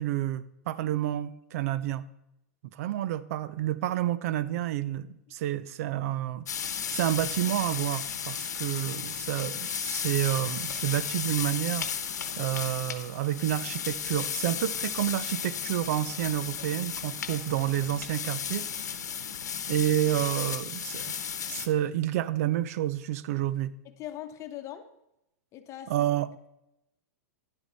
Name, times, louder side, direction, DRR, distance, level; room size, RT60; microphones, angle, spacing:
voice 1, 0.0-2.1 2.7-6.4 6.9-11.9 12.4-18.7 19.7-21.2 21.5-23.7 25.9-26.3, right 13 dB, 65° right, 0.6 m, -29 dB
sound 1, 6.5-21.7, left 8 dB, 90° left, 1.0 m, -34 dB
voice 2, 23.8-24.9 25.5-25.9, left 12 dB, 35° left, 1.0 m, -40 dB
11.0 x 8.2 x 4.0 m
hypercardioid pair, 120°, 9 cm